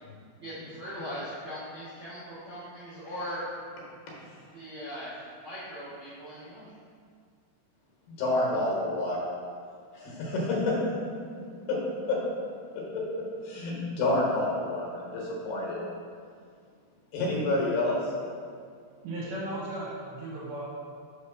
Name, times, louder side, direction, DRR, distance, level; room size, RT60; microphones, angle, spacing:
voice 1, 0.4-3.6 4.5-6.7, equal, 55° right, -11 dB, 1.6 m, -39 dB
voice 2, 8.2-9.2 9.9-10.8 11.7-11.8 12.1-12.2 12.9-13.0 13.4-15.8 17.1-18.3, left 2 dB, 75° left, -4 dB, 2.8 m, -28 dB
voice 3, 19.0-20.6, right 1 dB, 70° right, -6 dB, 2.7 m, -36 dB
6.2 x 3.1 x 5.8 m, 2.2 s
omnidirectional pair, 5.0 m